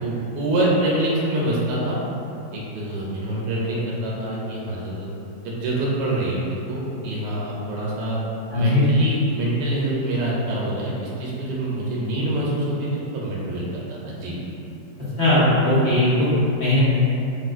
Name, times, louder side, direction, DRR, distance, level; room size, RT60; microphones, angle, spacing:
voice 1, 0.0-2.0 2.5-5.1 5.4-6.4 6.7-8.2 8.5-14.4, right 1 dB, 80° right, -5 dB, 1.2 m, -25 dB
voice 2, 8.5-8.9 15.2-16.3 16.6-16.8, left 1 dB, 30° left, -14 dB, 1.0 m, -18 dB
3.4 x 2.5 x 2.4 m, 2.9 s
omnidirectional pair, 1.9 m